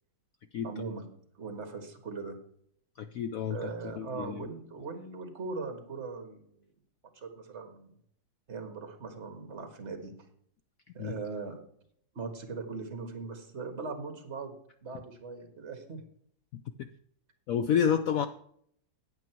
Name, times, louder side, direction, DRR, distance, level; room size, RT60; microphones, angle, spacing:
voice 1, 0.6-1.1 1.4-2.4 3.5-6.7 7.1-8.0 8.5-10.1 10.9-11.6 12.2-14.5 14.8-16.0, right 4 dB, 40° right, 6 dB, 1.8 m, -40 dB
voice 2, 3.0-3.7 4.0-4.5 11.0-11.2 16.5-16.9 17.5-18.3, left 8 dB, 80° left, 9 dB, 0.7 m, -29 dB
9.2 x 8.7 x 4.5 m, 0.66 s
omnidirectional pair, 2.0 m